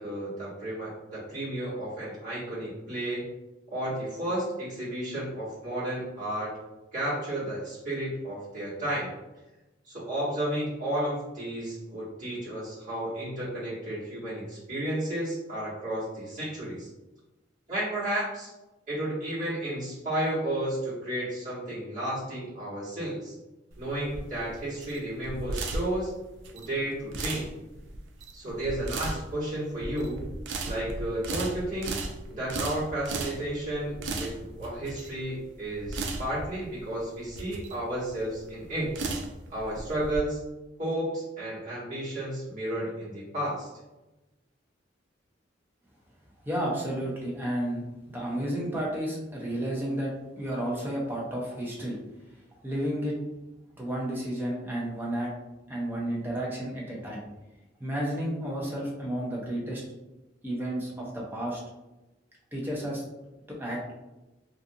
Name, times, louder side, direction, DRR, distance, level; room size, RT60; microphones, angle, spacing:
voice 1, 0.0-3.3 3.7-6.6 6.9-9.1 9.9-16.9 17.7-18.5 18.9-23.3 23.8-26.1 26.5-27.5 28.3-30.3 30.6-31.9 32.3-39.0 39.5-40.4 40.8-43.7, right 1 dB, 45° right, -9 dB, 1.3 m, -32 dB
sound 1, 23.7-40.2, right 2 dB, 80° right, 0.4 m, -36 dB
voice 2, 46.4-47.9 48.1-52.0 52.6-53.2 53.8-55.3 55.7-57.2 57.8-59.8 60.4-61.6 62.5-63.0 63.5-63.9, right 1 dB, 10° right, -4 dB, 0.6 m, -32 dB
2.5 x 2.4 x 2.7 m, 1.0 s
head